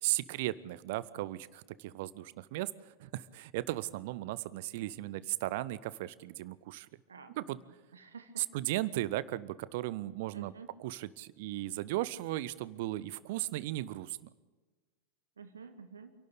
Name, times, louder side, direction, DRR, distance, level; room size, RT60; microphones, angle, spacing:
voice 1, 0.0-6.9 7.3-7.6 8.4-10.5 10.8-14.2, right 16 dB, 50° right, 19 dB, 0.7 m, -36 dB
voice 2, 7.1-7.6 7.9-8.5 10.3-10.7 15.4-16.1, right 5 dB, 70° right, 9 dB, 1.9 m, -50 dB
27.5 x 12.0 x 8.5 m, 1.4 s
figure-of-eight pair, 90°, 0 cm